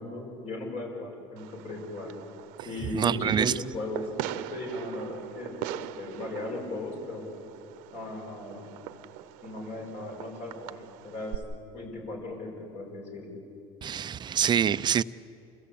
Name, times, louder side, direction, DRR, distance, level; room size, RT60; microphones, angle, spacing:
voice 1, 0.0-2.1 2.6-4.1 4.5-7.2 7.9-8.7 9.4-11.4 11.7-13.3, left 2 dB, 55° left, 0 dB, 7.5 m, -37 dB
Fireworks, 1.4-11.4, right 13 dB, 80° right, 0.9 m, -41 dB
voice 2, 2.9-3.6 13.8-15.0, right 8 dB, 30° right, 15 dB, 0.5 m, -25 dB
28.5 x 15.5 x 8.5 m, 2.7 s
supercardioid pair, 110°, 14 cm